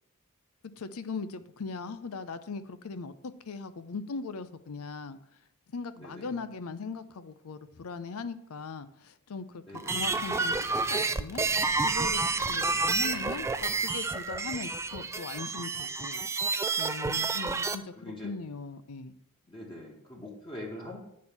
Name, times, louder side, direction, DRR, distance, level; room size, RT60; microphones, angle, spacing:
voice 1, 0.8-5.2 5.7-9.6 9.9-11.5 11.8-16.2 16.5-19.2, left 4 dB, 75° left, 12 dB, 0.5 m, -39 dB
voice 2, 5.9-6.3 9.7-10.1 12.4-12.8 17.1-17.6 17.9-18.3 19.5-21.0, left 1 dB, 25° left, -3 dB, 1.6 m, -44 dB
sound 1, 9.7-17.8, right 4 dB, 15° right, 0.3 m, -29 dB
sound 2, 9.9-15.4, left 1 dB, 50° left, 1.3 m, -48 dB
8.3 x 4.4 x 7.0 m, 0.75 s
head